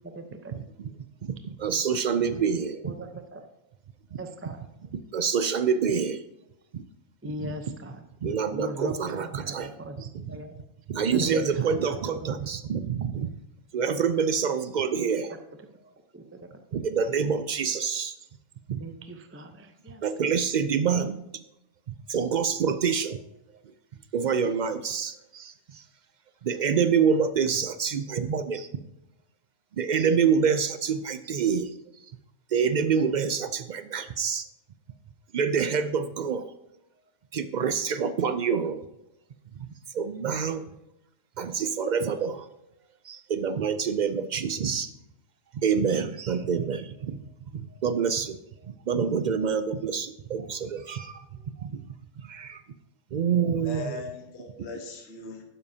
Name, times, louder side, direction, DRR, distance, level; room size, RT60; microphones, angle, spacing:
voice 1, 0.0-0.5 2.3-2.4 2.8-3.5 4.2-4.6 7.2-10.5 11.1-12.5 16.1-16.4 18.8-20.0, equal, 15° right, 6 dB, 0.5 m, -39 dB
voice 2, 1.2-2.9 5.1-6.2 6.7-6.8 7.4-7.5 8.2-9.7 10.1-10.2 10.9-13.3 13.7-15.3 16.7-18.1 18.7-18.8 20.0-21.2 22.1-23.2 24.1-25.5 26.4-28.7 29.8-31.7 32.5-34.5 35.3-36.5 37.3-38.8 39.9-40.6 41.4-42.4 43.1-44.9 45.6-47.2 47.8-48.4 48.9-51.1 51.6-51.8 52.3-52.6 53.1-53.8, right 6 dB, 75° right, 11 dB, 0.4 m, -26 dB
voice 3, 53.4-55.4, left 3 dB, 60° left, 3 dB, 1.5 m, -39 dB
12.0 x 9.8 x 2.7 m, 0.89 s
omnidirectional pair, 1.3 m